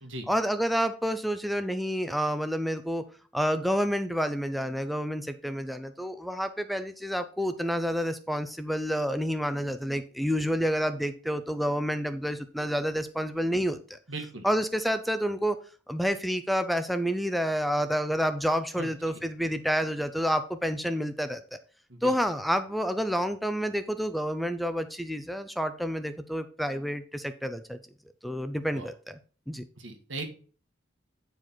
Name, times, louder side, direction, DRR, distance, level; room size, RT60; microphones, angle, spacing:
voice 1, 0.3-3.0 3.3-14.0 14.4-15.6 15.9-21.4 22.0-27.8 28.2-29.2 29.5-29.6, equal, ahead, 10 dB, 0.4 m, -29 dB
voice 2, 14.1-14.5 18.8-18.9 21.9-22.2 28.7-28.9 29.8-30.2, right 2 dB, 85° right, 5 dB, 1.7 m, -38 dB
9.3 x 4.8 x 4.4 m, 0.40 s
head